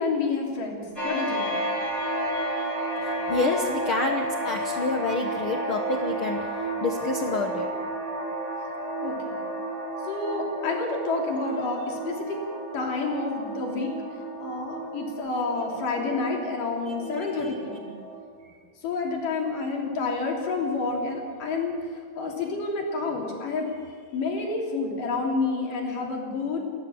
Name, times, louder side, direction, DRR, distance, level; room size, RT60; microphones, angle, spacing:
voice 1, 0.0-1.5 9.0-9.3 10.1-12.4 12.7-13.9 14.4-17.8 18.8-21.8 22.1-23.8 24.1-26.6, left 3 dB, 60° left, 0 dB, 4.7 m, -29 dB
sound 1, 1.0-18.2, right 1 dB, 10° right, 5.0 m, -32 dB
voice 2, 3.0-6.4 6.8-7.7 16.9-17.0 17.4-17.5, left 3 dB, 85° left, 3 dB, 1.1 m, -28 dB
30.0 x 13.0 x 7.2 m, 2.1 s
omnidirectional pair, 4.3 m